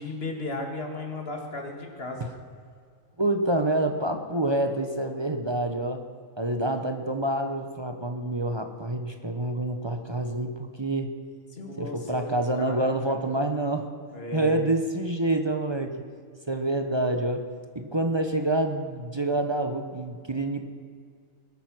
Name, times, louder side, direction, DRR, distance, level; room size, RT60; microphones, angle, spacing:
voice 1, 0.0-2.3 11.5-13.0 14.1-14.6, left 2 dB, 45° left, 2 dB, 2.2 m, -35 dB
voice 2, 3.2-6.0 6.4-11.1 11.8-13.9 14.3-16.0 16.5-17.4 17.7-20.7, right 1 dB, 25° right, 5 dB, 0.9 m, -27 dB
21.0 x 9.0 x 6.2 m, 2.1 s
omnidirectional pair, 1.4 m